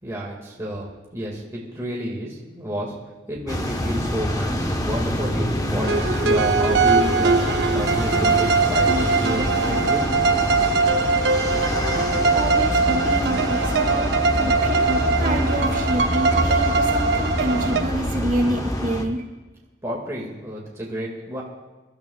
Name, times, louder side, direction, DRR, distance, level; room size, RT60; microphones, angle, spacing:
voice 1, 0.0-2.9 3.3-10.0 19.8-21.4, equal, 15° right, -3 dB, 2.0 m, -30 dB
sound 1, 3.5-19.0, equal, 20° left, 1.0 m, -26 dB
sound 2, 5.8-17.8, right 4 dB, 65° right, 0.7 m, -21 dB
voice 2, 11.9-14.9 15.2-19.3, right 1 dB, 50° right, 0 dB, 2.4 m, -27 dB
27.0 x 12.5 x 2.3 m, 1.2 s
head